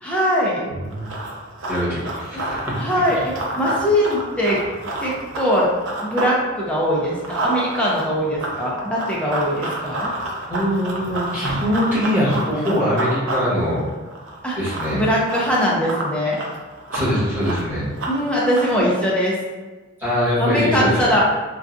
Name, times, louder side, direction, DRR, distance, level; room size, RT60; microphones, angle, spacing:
voice 1, 0.0-0.7 2.3-2.4 2.8-4.6 5.0-5.7 6.0-10.1 14.4-14.6 14.9-16.4 18.1-19.4 20.4-21.2, equal, 5° left, -5 dB, 0.5 m, -21 dB
voice 2, 0.7-1.0 1.7-3.0 10.5-13.8 14.6-15.0 16.9-17.8 20.0-21.1, equal, 10° right, -12 dB, 1.3 m, -22 dB
Run, 0.9-6.4 6.7-18.9, right 1 dB, 75° right, 0.6 m, -29 dB
3.7 x 2.3 x 2.5 m, 1.3 s
head